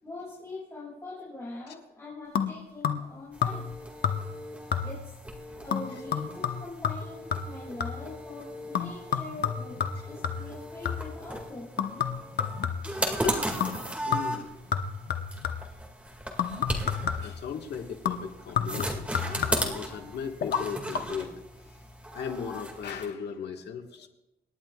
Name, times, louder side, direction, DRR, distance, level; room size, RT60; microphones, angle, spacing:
voice 1, 0.0-3.6 4.8-5.1 5.6-11.7, left 2 dB, 15° left, -9 dB, 5.8 m, -42 dB
sound 1, 2.4-3.1 3.4-3.8 4.0-4.4 4.7-5.1 5.7-8.1 8.7-11.2 11.8-13.1 13.6-13.8 14.1-15.8 16.4-17.4 18.1-19.8 20.4-20.6 20.9-21.0, left 7 dB, 70° left, 1.0 m, -31 dB
sound 2, 3.3-23.1, right 1 dB, 5° right, 2.1 m, -37 dB
voice 2, 14.0-14.6 17.2-21.8 22.1-24.1, left 7 dB, 85° left, 4 dB, 1.6 m, -37 dB
27.0 x 11.0 x 2.4 m, 0.99 s
wide cardioid pair, 135°, 17 cm